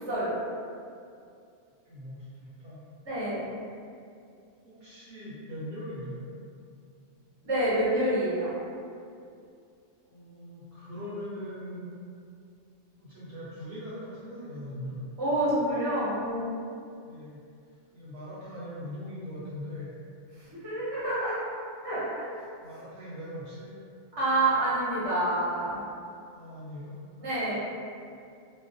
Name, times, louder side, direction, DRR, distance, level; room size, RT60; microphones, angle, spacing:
voice 1, 1.8-2.8 4.6-6.2 10.0-11.9 13.0-14.9 17.0-17.4 17.9-19.9 22.6-23.8 26.3-27.0, equal, 60° right, -11 dB, 0.8 m, -41 dB
voice 2, 3.0-3.5 7.4-8.5 15.2-16.5 20.5-21.4 21.8-22.4 24.2-25.8 27.2-27.5, right 1 dB, 25° right, -10 dB, 0.7 m, -27 dB
2.3 x 2.0 x 2.6 m, 2.4 s
omnidirectional pair, 1.3 m